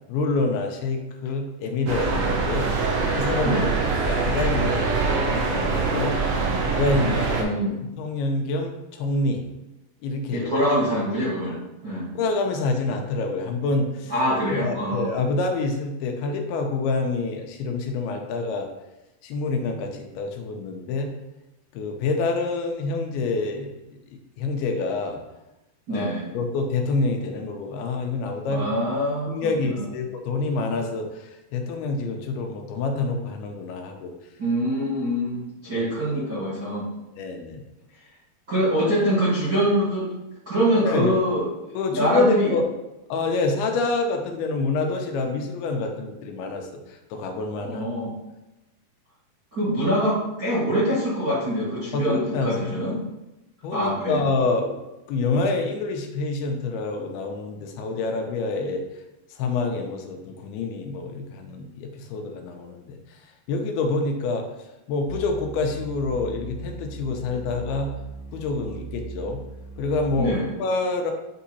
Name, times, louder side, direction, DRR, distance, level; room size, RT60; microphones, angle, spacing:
voice 1, 0.1-2.7 3.1-3.6 4.1-6.2 6.7-7.6 8.0-9.4 10.0-10.5 12.2-14.1 14.5-18.7 19.2-21.1 21.7-24.0 24.4-25.2 25.9-28.7 29.3-31.1 31.5-34.1 37.2-37.6 40.9-41.2 41.8-42.7 43.1-46.7 47.1-47.8 51.9-53.0 53.6-54.8 55.1-58.8 59.4-63.0 63.5-64.5 64.9-67.9 68.3-69.4 69.8-70.3 70.6-71.1, left 3 dB, 85° left, 3 dB, 2.6 m, -27 dB
sound 1, 1.9-7.4, right 4 dB, 70° right, 2.3 m, -24 dB
voice 2, 3.4-3.7 7.4-7.8 10.3-12.1 14.1-15.1 25.9-26.3 28.5-29.8 34.4-36.9 38.5-40.1 40.4-42.5 47.7-48.1 49.5-53.0 53.7-54.3 70.2-70.5, equal, 50° right, -10 dB, 1.0 m, -24 dB
sound 2, 65.1-70.3, right 5 dB, 55° left, 1.2 m, -39 dB
8.1 x 2.8 x 4.1 m, 0.95 s
omnidirectional pair, 4.6 m